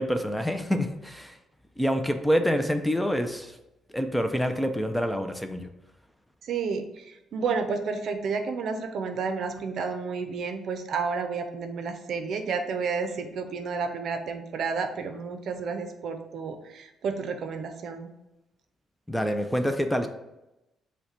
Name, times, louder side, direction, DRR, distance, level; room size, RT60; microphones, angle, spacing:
voice 1, 0.0-1.4 1.8-3.6 3.9-5.7 19.1-20.1, equal, 5° left, 7 dB, 0.4 m, -26 dB
voice 2, 6.4-18.1, right 5 dB, 65° right, 7 dB, 0.6 m, -31 dB
5.4 x 2.2 x 4.3 m, 0.94 s
cardioid pair, 90°, 0 cm